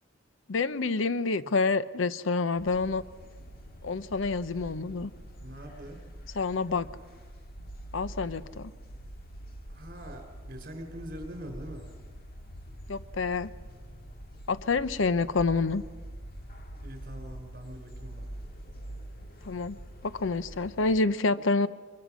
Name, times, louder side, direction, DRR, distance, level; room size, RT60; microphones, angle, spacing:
voice 1, 0.5-3.0 3.8-5.1 6.3-6.9 7.9-8.7 12.9-13.5 14.5-15.8 19.4-21.7, left 3 dB, 85° left, 14 dB, 0.7 m, -28 dB
sound 1, 2.6-21.0, right 1 dB, 50° left, 1.9 m, -45 dB
voice 2, 5.4-6.0 9.7-11.9 16.8-18.3, equal, 50° right, 4 dB, 4.2 m, -43 dB
23.5 x 22.0 x 6.3 m, 1.5 s
head